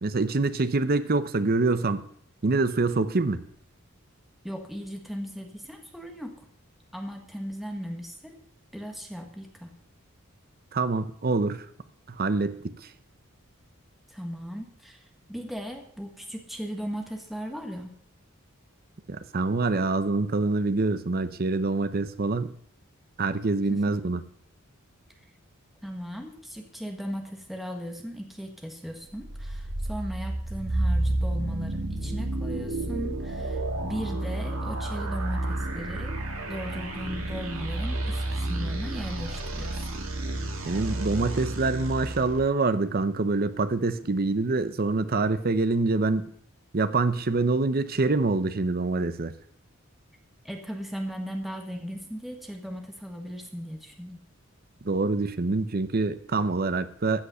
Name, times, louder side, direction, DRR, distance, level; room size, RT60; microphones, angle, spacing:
voice 1, 0.0-2.1 2.4-3.4 10.7-11.7 12.1-12.7 19.1-22.6 23.2-24.2 40.6-46.3 46.7-49.3 54.8-57.2, right 3 dB, 45° right, 12 dB, 0.7 m, -25 dB
voice 2, 4.4-6.4 6.9-8.4 8.7-9.8 14.1-17.9 23.7-24.0 25.8-36.2 36.5-40.0 50.4-54.2, equal, ahead, 3 dB, 1.3 m, -37 dB
sound 1, 29.1-42.4, right 1 dB, 75° right, 2.0 m, -31 dB
14.5 x 5.3 x 6.7 m, 0.63 s
head